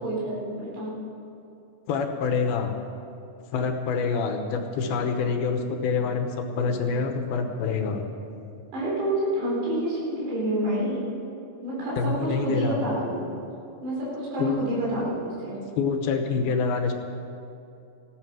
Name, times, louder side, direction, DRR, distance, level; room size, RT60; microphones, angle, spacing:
voice 1, 0.0-0.9 8.7-11.0 11.6-13.3 13.8-15.6, right 1 dB, 80° right, -6 dB, 6.1 m, -28 dB
voice 2, 1.9-2.8 3.5-8.1 12.0-12.8 14.4-14.7 15.7-16.9, left 5 dB, 75° left, 5 dB, 2.6 m, -26 dB
16.0 x 12.5 x 6.2 m, 2.8 s
omnidirectional pair, 4.8 m